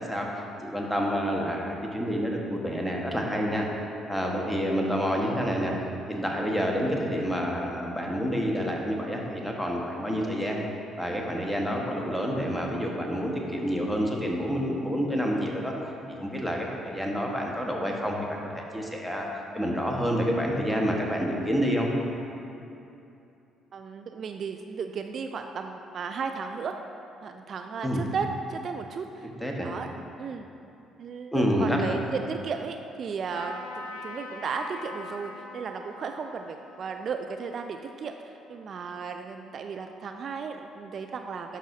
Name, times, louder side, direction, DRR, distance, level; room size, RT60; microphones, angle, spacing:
voice 1, 0.0-3.7 4.1-5.7 6.1-10.6 11.0-15.8 16.1-19.3 19.5-21.9 27.8-28.0 29.4-29.7 31.3-31.8, equal, ahead, -1 dB, 1.3 m, -28 dB
voice 2, 23.7-26.8 27.2-29.3 29.6-30.5 31.0-41.6, right 5 dB, 55° right, 6 dB, 0.3 m, -35 dB
Trumpet, 33.3-38.8, left 2 dB, 85° left, 0.5 m, -44 dB
10.5 x 6.0 x 2.7 m, 2.7 s
hypercardioid pair, 55°, 0 cm